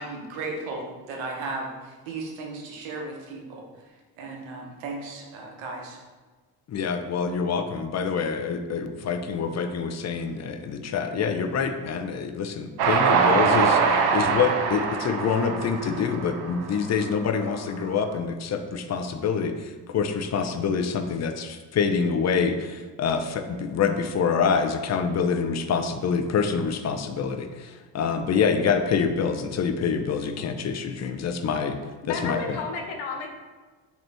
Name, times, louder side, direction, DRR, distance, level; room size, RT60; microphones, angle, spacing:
voice 1, 0.0-3.7 4.2-6.0, right 3 dB, 75° right, 0 dB, 1.0 m, -35 dB
voice 2, 6.7-13.8 14.1-31.8 32.1-32.4, left 6 dB, 35° left, 7 dB, 0.4 m, -26 dB
Train, 12.8-17.2, right 5 dB, 55° right, 0.6 m, -23 dB
voice 3, 32.1-33.3, left 4 dB, 80° left, 3 dB, 0.8 m, -31 dB
3.9 x 3.0 x 3.4 m, 1.3 s
supercardioid pair, 65°, 47 cm